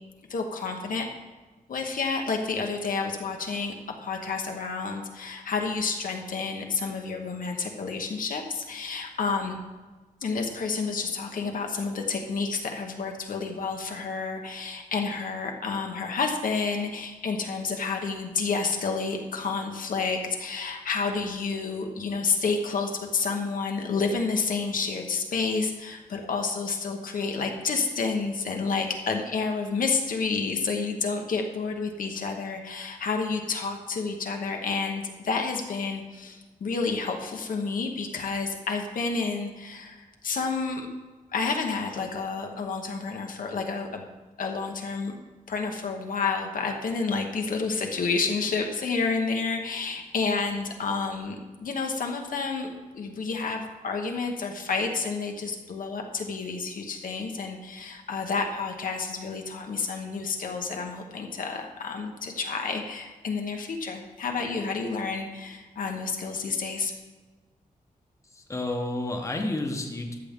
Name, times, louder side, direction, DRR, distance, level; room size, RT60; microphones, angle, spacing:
voice 1, 0.3-1.1 1.7-3.7 4.0-9.6 10.2-40.9 41.3-44.0 44.4-45.2 45.5-66.9, left 4 dB, 70° left, 3 dB, 1.0 m, -30 dB
voice 2, 68.3-70.2, left 2 dB, 20° left, 3 dB, 0.9 m, -30 dB
13.5 x 6.8 x 3.6 m, 1.3 s
wide cardioid pair, 145°, 14 cm